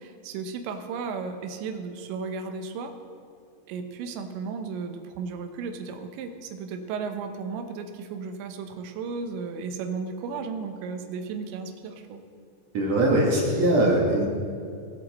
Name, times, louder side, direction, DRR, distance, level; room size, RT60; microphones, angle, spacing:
voice 1, 0.0-2.9 3.7-12.2, right 5 dB, 85° right, 6 dB, 3.2 m, -34 dB
voice 2, 12.7-14.3, right 1 dB, 55° right, -3 dB, 2.1 m, -21 dB
19.5 x 7.1 x 4.2 m, 2.3 s
omnidirectional pair, 5.0 m